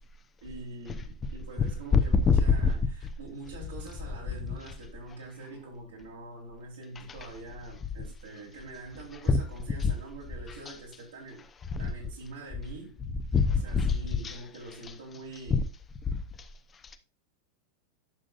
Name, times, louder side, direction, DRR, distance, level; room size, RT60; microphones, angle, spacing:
voice 1, 0.4-11.5 11.8-13.0 13.6-15.6, right 2 dB, 65° right, 3.4 m, -44 dB
voice 2, 1.9-2.7 4.7-4.8 7.0-7.3 9.3-9.4 9.8-9.9 10.5-10.8 11.7-11.9 13.1-14.0 14.2-14.4 14.8-14.9 15.5-15.6 16.1-17.0, left 5 dB, 20° left, 0.8 m, -26 dB
11.5 x 6.3 x 2.5 m
figure-of-eight pair, 90°, 0 cm